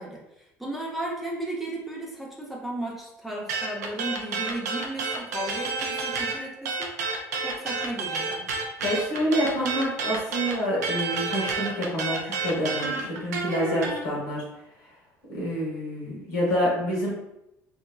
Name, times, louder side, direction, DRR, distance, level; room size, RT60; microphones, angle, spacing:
voice 1, 0.0-6.9 7.4-8.5, right 1 dB, ahead, -4 dB, 0.7 m, -35 dB
sound 1, 3.5-6.4 6.6-14.0, right 4 dB, 85° right, 0.4 m, -29 dB
voice 2, 8.8-14.4 15.3-17.1, equal, 80° left, -5 dB, 1.3 m, -27 dB
2.8 x 2.5 x 2.3 m, 0.85 s
hypercardioid pair, 65°, 9 cm